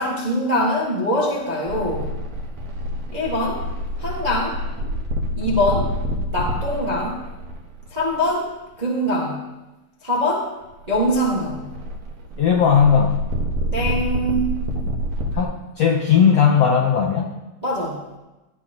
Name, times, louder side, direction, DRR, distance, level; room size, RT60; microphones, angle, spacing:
voice 1, 0.0-2.1 3.1-3.6 4.0-4.6 5.4-5.9 6.3-7.2 7.9-8.5 8.8-9.4 10.0-10.5 10.9-11.7 13.7-14.7 17.6-18.0, left 1 dB, 30° right, -4 dB, 0.7 m, -23 dB
sound 1, 1.7-8.3 10.6-15.4, equal, 55° right, 2.2 m, -27 dB
voice 2, 12.4-13.2 15.3-17.3, left 7 dB, 85° left, 2 dB, 1.4 m, -17 dB
17.0 x 12.0 x 3.0 m, 1.0 s
omnidirectional pair, 4.3 m